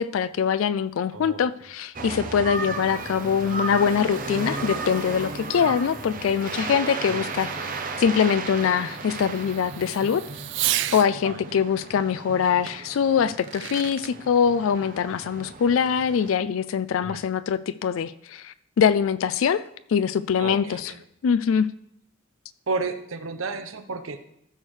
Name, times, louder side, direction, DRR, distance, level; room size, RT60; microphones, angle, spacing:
voice 1, 0.0-7.7 8.0-10.2 10.9-19.6 19.9-20.9 21.2-21.7, left 7 dB, 75° left, 15 dB, 0.3 m, -23 dB
voice 2, 1.1-1.5 5.6-5.8 7.1-7.3 11.2-11.7 15.2-15.3 17.0-17.2 20.4-21.0 22.7-24.2, right 3 dB, 75° right, 9 dB, 0.8 m, -33 dB
sound 1, 1.9-16.4, right 3 dB, 40° right, 0.8 m, -35 dB
Fireworks, 2.5-11.1 12.7-12.8 13.3-14.1, right 13 dB, 60° right, 0.4 m, -36 dB
14.5 x 6.4 x 3.2 m, 0.76 s
head